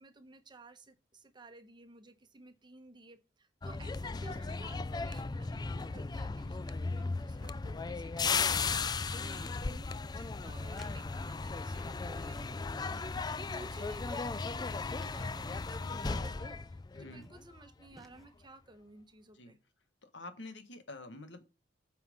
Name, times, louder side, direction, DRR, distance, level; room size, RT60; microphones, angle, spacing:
voice 1, 0.0-19.6, right 2 dB, 25° right, 8 dB, 1.3 m, -55 dB
sound 1, 3.6-17.6 17.9-18.2, left 4 dB, 20° left, 0.4 m, -36 dB
sound 2, 10.5-11.0 11.3-12.1 12.4-12.6 13.1-13.2 13.5-13.8 14.1-15.1 15.4-16.2 16.8-16.9 17.2-17.6 18.0-18.3, equal, ahead, 1.1 m, -60 dB
voice 2, 13.4-13.7 16.9-17.3 19.3-19.5 20.0-21.5, left 2 dB, 70° left, 9 dB, 1.7 m, -48 dB
9.0 x 5.8 x 5.4 m, 0.29 s
head